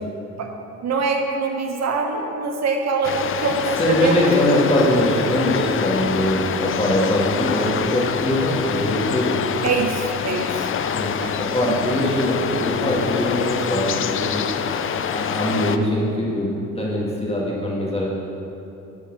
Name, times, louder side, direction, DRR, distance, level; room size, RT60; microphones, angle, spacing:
voice 1, 0.8-4.2 9.6-10.7 11.2-11.3 11.7-11.8, right 4 dB, 60° right, 3 dB, 1.0 m, -24 dB
sound 1, 3.0-15.8, left 8 dB, 45° left, 0.5 m, -26 dB
voice 2, 3.7-9.5 10.9-14.5 15.1-18.1, left 1 dB, 20° left, -4 dB, 2.2 m, -22 dB
11.0 x 4.5 x 6.1 m, 2.8 s
cardioid pair, 90°, 30 cm